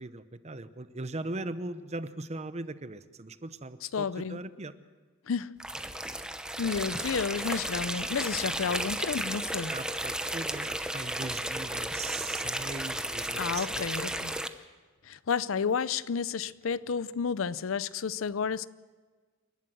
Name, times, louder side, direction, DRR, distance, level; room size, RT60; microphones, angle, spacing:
voice 1, 0.0-4.7 8.5-8.8 9.7-13.9, right 2 dB, 35° right, 0.8 m, -39 dB
voice 2, 3.9-4.4 5.3-5.6 6.6-9.7 13.3-14.4 15.0-18.7, left 6 dB, 80° left, 0.5 m, -31 dB
sound 1, 5.6-14.5, right 1 dB, 5° right, 0.8 m, -34 dB
sound 2, 6.6-9.5, right 1 dB, 80° right, 1.9 m, -52 dB
28.0 x 12.0 x 7.8 m
head